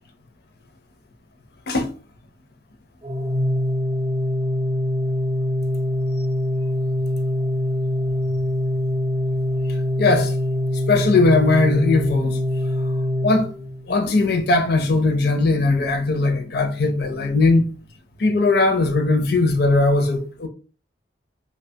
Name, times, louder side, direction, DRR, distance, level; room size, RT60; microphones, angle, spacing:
Organ, 3.0-13.9, left 1 dB, 35° right, 0.5 m, -23 dB
voice 1, 9.7-10.3 10.9-12.4 12.8-12.9 13.2-13.5 13.9-17.7 18.2-20.5, left 3 dB, 55° left, 0.5 m, -19 dB
2.8 x 2.2 x 2.7 m
head